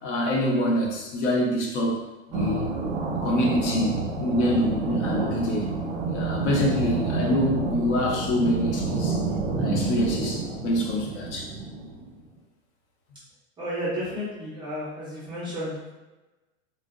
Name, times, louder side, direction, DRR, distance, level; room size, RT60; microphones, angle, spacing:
voice 1, 0.0-2.0 2.3-2.7 3.2-5.7 6.1-9.2 9.6-11.5, left 1 dB, 60° left, -1 dB, 0.7 m, -25 dB
sound 1, 2.3-12.2, right 4 dB, 35° right, 0.7 m, -29 dB
voice 2, 13.6-15.9, equal, 10° right, -8 dB, 0.4 m, -32 dB
2.5 x 2.0 x 2.4 m, 1.1 s
supercardioid pair, 135°, 40 cm